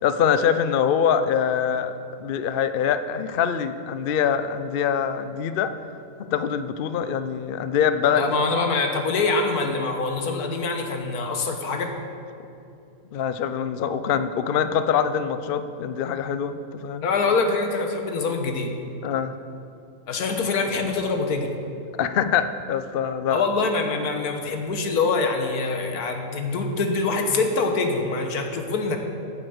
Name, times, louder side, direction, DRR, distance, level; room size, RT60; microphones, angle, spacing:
voice 1, 0.0-1.9 2.2-5.7 6.3-8.2 13.1-17.1 19.0-19.3 22.0-23.4, left 8 dB, 65° left, 11 dB, 0.5 m, -24 dB
voice 2, 8.1-11.9 17.0-18.7 20.1-21.5 23.3-29.0, left 3 dB, 90° left, 4 dB, 1.6 m, -24 dB
9.1 x 7.8 x 8.0 m, 2.6 s
omnidirectional pair, 1.6 m